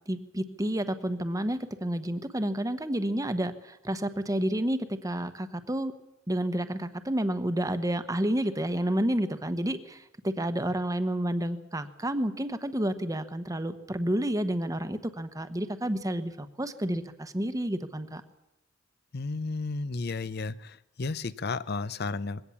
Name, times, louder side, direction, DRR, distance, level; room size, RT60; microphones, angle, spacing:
voice 1, 0.1-5.9 6.3-18.2, right 1 dB, 20° right, 10 dB, 1.1 m, -30 dB
voice 2, 19.1-22.4, left 3 dB, 55° left, 16 dB, 0.7 m, -33 dB
21.5 x 17.0 x 7.2 m, 0.90 s
head